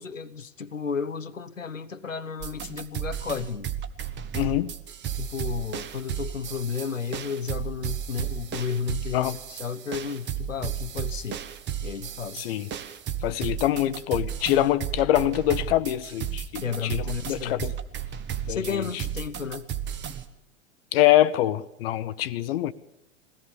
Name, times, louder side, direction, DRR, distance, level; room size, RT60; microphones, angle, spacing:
voice 1, 0.0-3.7 5.2-11.4 11.8-12.4 16.6-17.7 18.5-19.7, left 6 dB, 85° left, 0.9 m, -33 dB
sound 1, 2.4-20.2, right 9 dB, 30° right, 1.4 m, -34 dB
voice 2, 4.3-4.7 9.1-9.4 12.3-12.7 13.2-17.7 18.5-18.8 20.9-22.7, left 13 dB, 50° left, 0.9 m, -24 dB
21.5 x 17.5 x 7.2 m
figure-of-eight pair, 90°, 37 cm